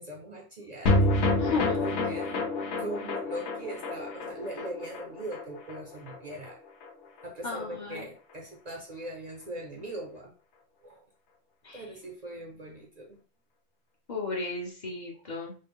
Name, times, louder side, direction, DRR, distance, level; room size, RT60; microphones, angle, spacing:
voice 1, 0.0-1.2 1.7-2.4 2.8-6.6 7.2-10.3 10.8-11.1 11.7-13.2 15.1-15.2, right 1 dB, 45° right, -1 dB, 0.7 m, -40 dB
sound 1, 0.9-7.3 7.6-7.7 7.9-8.0, left 2 dB, 80° left, 1.0 m, -29 dB
voice 2, 1.4-2.0 7.4-8.1 11.6-11.8 14.1-15.6, left 4 dB, 45° left, -2 dB, 0.9 m, -34 dB
3.2 x 2.2 x 3.5 m, 0.37 s
omnidirectional pair, 1.1 m